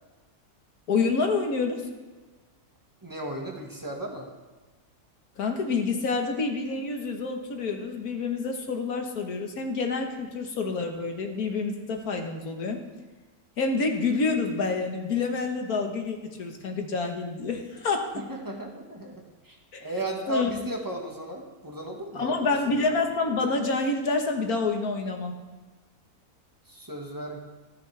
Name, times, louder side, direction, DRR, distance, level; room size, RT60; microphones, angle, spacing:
voice 1, 0.9-1.8 5.4-12.8 13.6-18.2 19.7-19.9 20.3-20.5 22.1-25.4, left 4 dB, 85° left, 3 dB, 1.9 m, -28 dB
voice 2, 3.0-4.3 18.1-22.5 26.7-27.4, right 1 dB, 15° right, 0 dB, 1.6 m, -35 dB
15.0 x 12.0 x 3.4 m, 1.3 s
omnidirectional pair, 1.5 m